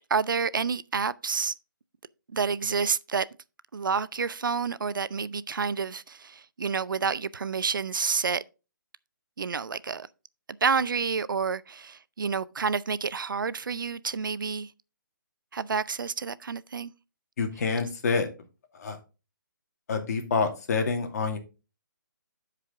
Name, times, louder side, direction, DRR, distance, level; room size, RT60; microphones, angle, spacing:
voice 1, 0.1-1.5 2.3-3.3 3.7-8.4 9.4-10.1 10.6-14.7 15.5-16.9, right 5 dB, 75° right, 0.6 m, -29 dB
voice 2, 17.4-18.3 18.7-19.0 19.9-21.4, left 4 dB, 50° left, 2.2 m, -27 dB
11.5 x 5.0 x 3.7 m
figure-of-eight pair, 150°, 11 cm